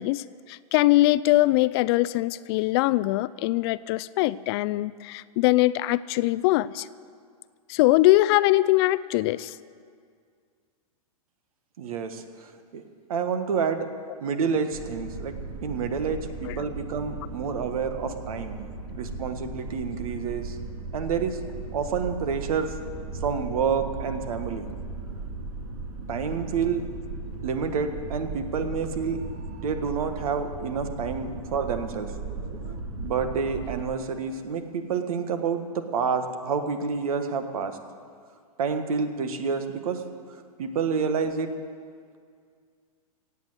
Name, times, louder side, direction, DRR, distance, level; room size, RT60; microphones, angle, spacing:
voice 1, 0.0-6.9 7.7-9.6 16.5-16.6, left 18 dB, 45° left, 18 dB, 0.4 m, -22 dB
voice 2, 11.8-12.8 13.1-13.9 14.2-15.3 15.6-18.6 19.0-20.6 20.9-21.4 21.7-22.8 23.1-24.7 26.1-26.8 27.4-29.2 29.5-32.1 33.0-37.8 38.6-40.0 40.6-41.5, right 6 dB, 70° right, 8 dB, 1.6 m, -28 dB
sound 1, 14.7-33.8, right 3 dB, 50° right, 2.1 m, -37 dB
17.0 x 8.5 x 8.1 m, 2.1 s
hypercardioid pair, 115°, 19 cm